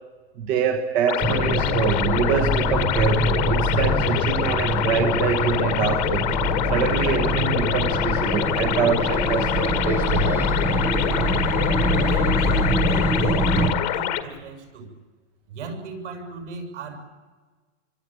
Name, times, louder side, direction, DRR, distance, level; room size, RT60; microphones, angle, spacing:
voice 1, 0.4-6.3 6.7-10.4, right 7 dB, 25° right, 5 dB, 1.3 m, -25 dB
sound 1, 1.1-14.2, left 13 dB, 35° left, 1.5 m, -26 dB
sound 2, 1.2-13.7, right 1 dB, 5° right, 0.9 m, -24 dB
voice 2, 12.1-14.9 15.5-17.0, right 3 dB, 65° right, 5 dB, 7.4 m, -37 dB
26.5 x 25.0 x 9.1 m, 1.4 s
supercardioid pair, 180°, 38 cm